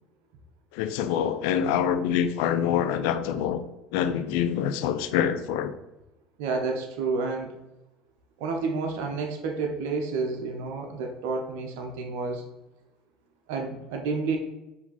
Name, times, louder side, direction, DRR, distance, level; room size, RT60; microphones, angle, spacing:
voice 1, 0.7-3.6 3.9-5.7, left 9 dB, 70° left, 10 dB, 0.4 m, -25 dB
voice 2, 6.4-7.5 8.4-12.4 13.5-14.4, right 4 dB, 70° right, 2 dB, 0.6 m, -30 dB
4.6 x 2.7 x 3.8 m, 0.98 s
hypercardioid pair, 70°, 0 cm